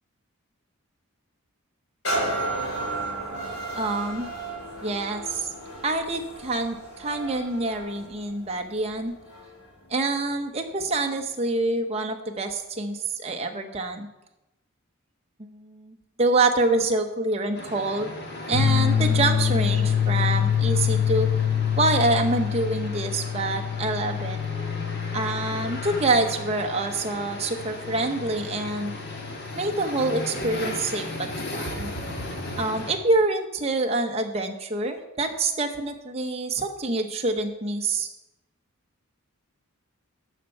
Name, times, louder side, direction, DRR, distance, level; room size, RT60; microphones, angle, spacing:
sound 1, 2.0-9.6 10.2-10.3, right 2 dB, 75° left, 2.7 m, -33 dB
voice 1, 3.7-4.3 4.8-5.5 5.8-9.1 9.9-14.1 15.4-18.1 18.5-21.3 21.8-24.4 25.1-29.0 29.5-31.9 32.6-38.1, right 2 dB, 30° right, 4 dB, 0.9 m, -26 dB
sound 2, 17.5-33.0, left 1 dB, 50° left, 1.4 m, -36 dB
sound 3, 18.5-29.7, left 8 dB, 10° left, 1.9 m, -26 dB
12.5 x 4.5 x 6.8 m, 0.96 s
head